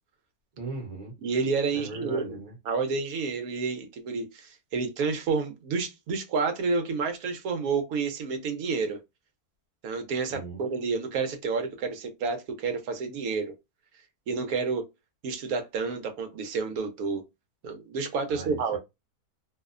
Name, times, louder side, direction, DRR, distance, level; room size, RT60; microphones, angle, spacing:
voice 1, 0.5-1.2 1.7-2.5 10.3-10.6 18.3-18.8, right 3 dB, 40° right, 0.9 m, -38 dB
voice 2, 1.2-2.3 2.7-9.0 9.8-13.5 14.3-14.8 15.2-17.2 17.6-18.8, right 4 dB, 75° right, 1.1 m, -29 dB
2.7 x 2.1 x 2.3 m
omnidirectional pair, 1.6 m